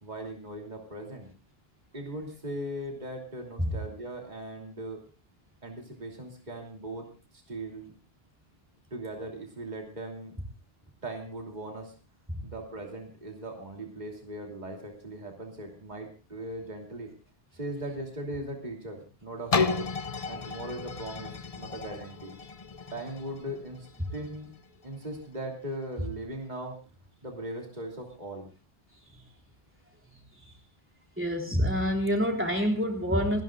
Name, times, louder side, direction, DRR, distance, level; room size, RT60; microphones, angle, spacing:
voice 1, 0.0-1.3 1.9-5.0 5.6-7.1 7.3-7.9 8.9-10.3 11.0-11.9 12.4-17.1 17.5-19.9 20.3-22.4 22.9-23.9 24.1-24.5 24.8-26.8 27.2-28.5, right 1 dB, 45° right, 1 dB, 3.1 m, -39 dB
sound 1, 19.5-25.3 25.8-25.9, left 4 dB, 40° left, 0.8 m, -33 dB
voice 2, 31.2-33.4, equal, 10° right, 1 dB, 3.5 m, -27 dB
29.5 x 11.0 x 2.4 m, 0.35 s
omnidirectional pair, 1.0 m